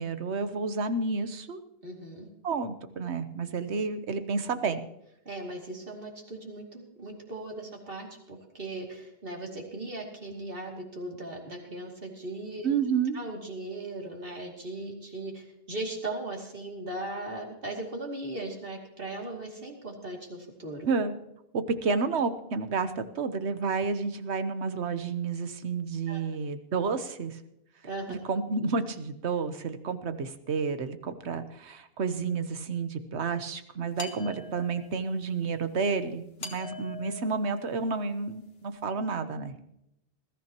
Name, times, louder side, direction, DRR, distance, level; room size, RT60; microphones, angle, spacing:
voice 1, 0.0-1.6 2.4-4.8 12.6-13.2 20.9-21.1 21.5-27.4 28.1-39.5, right 4 dB, 80° right, 10 dB, 1.3 m, -30 dB
voice 2, 1.8-2.3 5.2-12.7 13.1-20.9 26.1-26.2 27.8-28.3, right 2 dB, 55° right, 0 dB, 2.9 m, -38 dB
sound 1, 34.0-35.1 36.4-38.3, left 3 dB, 65° left, 1.8 m, -43 dB
20.5 x 14.0 x 3.0 m, 0.81 s
omnidirectional pair, 1.1 m